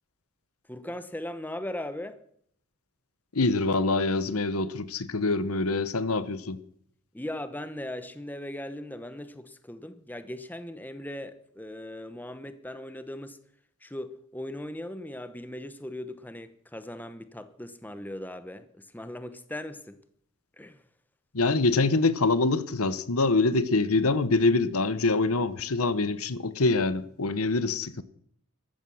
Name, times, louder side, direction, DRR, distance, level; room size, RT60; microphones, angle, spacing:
voice 1, 0.7-2.2 7.1-13.4 13.8-20.0 20.6-20.8, left 1 dB, 10° left, 0.8 m, -39 dB
voice 2, 3.3-6.6 21.3-28.0, left 3 dB, 85° left, 1.0 m, -25 dB
14.0 x 13.0 x 6.4 m
head